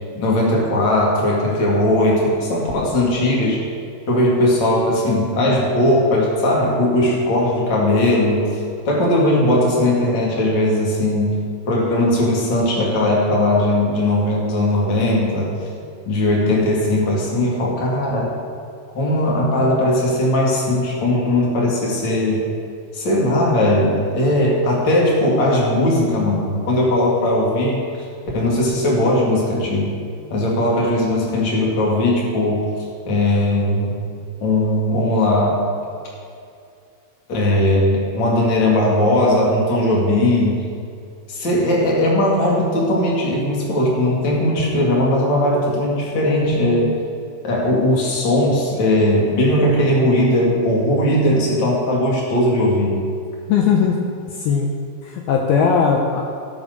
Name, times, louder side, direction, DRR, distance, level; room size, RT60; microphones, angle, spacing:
voice 1, 0.1-3.6 4.1-8.5 8.9-11.4 11.7-15.5 16.1-18.3 18.9-22.5 22.9-27.8 28.3-29.9 30.3-32.7 33.1-33.9 34.4-35.6 37.3-40.6 41.3-46.9 47.4-53.0, left 1 dB, 40° left, -4 dB, 1.8 m, -18 dB
voice 2, 53.5-54.0 54.3-54.7 55.0-56.2, left 6 dB, 85° left, 0 dB, 2.2 m, -18 dB
16.0 x 5.4 x 6.6 m, 2.4 s
omnidirectional pair, 5.4 m